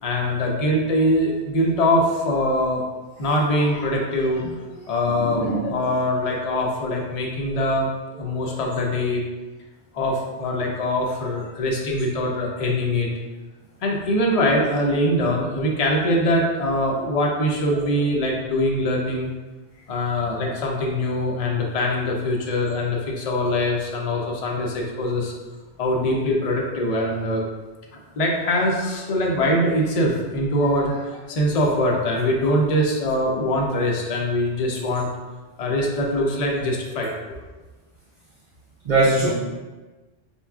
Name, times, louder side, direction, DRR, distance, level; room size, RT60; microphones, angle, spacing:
voice 1, 0.0-2.8 3.2-9.2 9.9-13.1 13.8-19.3 19.9-25.3 25.8-27.4 27.9-35.1 35.6-37.1, left 1 dB, 45° left, -1 dB, 0.6 m, -23 dB
voice 2, 5.2-5.7 38.8-39.3, right 2 dB, 50° right, -7 dB, 0.7 m, -20 dB
5.3 x 2.3 x 2.3 m, 1.2 s
omnidirectional pair, 1.1 m